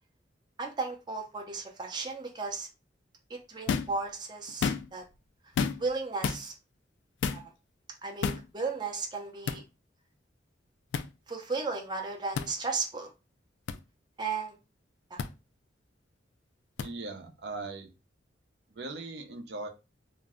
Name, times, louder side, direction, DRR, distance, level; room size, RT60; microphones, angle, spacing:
voice 1, 0.6-2.7 3.3-5.0 5.8-6.5 7.3-7.4 8.0-9.6 11.3-13.1 14.2-14.5 15.1-15.2, right 4 dB, 25° right, 0.5 m, -35 dB
sound 1, 3.7-4.0 4.5-5.0 5.6-5.9 6.2-6.4 7.2-7.5 8.2-8.5 9.5-9.6 10.9-11.1 12.3-12.5 13.7-13.8 15.2-15.3 16.8-16.9, left 6 dB, 85° left, 0.3 m, -30 dB
voice 2, 16.8-17.9 18.7-19.7, right 3 dB, 70° right, 0.6 m, -39 dB
2.6 x 2.1 x 3.5 m
head